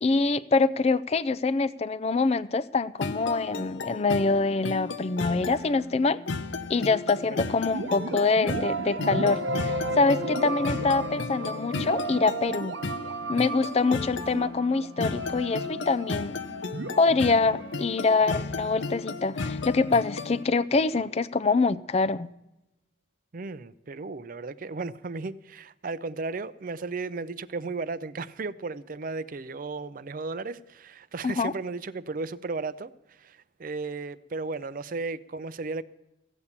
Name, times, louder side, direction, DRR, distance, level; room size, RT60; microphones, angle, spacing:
voice 1, 0.0-6.2 6.7-9.4 9.9-12.8 13.3-16.4 17.0-22.3 31.2-31.5, left 3 dB, 35° left, 0.4 m, -25 dB
sound 1, 3.0-20.4, left 4 dB, 85° left, 0.7 m, -35 dB
voice 2, 7.2-7.6 23.3-35.8, right 3 dB, 50° right, 0.5 m, -35 dB
sound 2, 7.7-19.4, right 2 dB, 75° right, 0.8 m, -34 dB
15.0 x 8.2 x 7.2 m
head